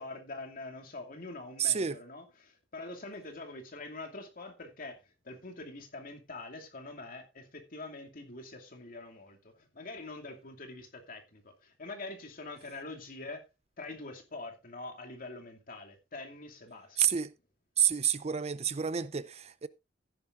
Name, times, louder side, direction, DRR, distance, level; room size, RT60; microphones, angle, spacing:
voice 1, 0.0-5.0 5.2-13.5 13.8-17.0, left 2 dB, 50° left, 2.6 m, -44 dB
voice 2, 1.6-2.0 17.0-17.3 17.8-19.7, right 8 dB, 35° right, 0.5 m, -29 dB
14.5 x 10.5 x 2.6 m
head